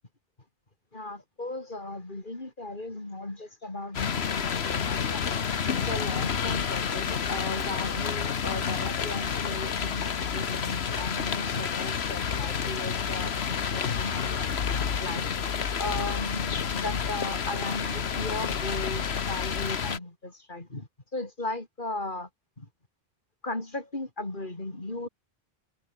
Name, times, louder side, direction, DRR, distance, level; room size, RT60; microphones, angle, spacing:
voice 1, 0.9-5.2 5.7-14.5 14.8-15.3 15.8-22.3 22.6-22.7 23.4-25.1, left 2 dB, 50° left, 4.0 m, -36 dB
sound 1, 3.9-20.0, left 7 dB, 85° left, 1.4 m, -29 dB
omnidirectional pair, 1.0 m